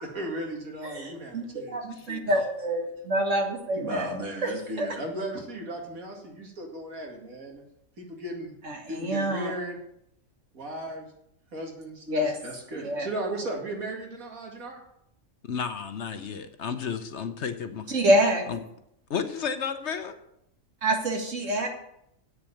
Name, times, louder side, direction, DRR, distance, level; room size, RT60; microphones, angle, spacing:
voice 1, 0.0-1.8 3.8-7.6 8.0-8.5 8.9-9.8 10.5-11.1 11.5-14.8, right 1 dB, 85° right, 0 dB, 2.6 m, -36 dB
voice 2, 0.8-4.1 4.4-4.5 4.8-4.9 8.6-9.5 12.1-12.4 12.7-13.1 17.9-18.5 20.8-21.7, right 1 dB, 65° right, 2 dB, 2.2 m, -26 dB
voice 3, 1.9-2.4 15.4-17.9 18.5-18.6 19.1-20.1, left 6 dB, 60° left, 9 dB, 1.1 m, -32 dB
8.4 x 6.7 x 8.5 m, 0.77 s
omnidirectional pair, 1.4 m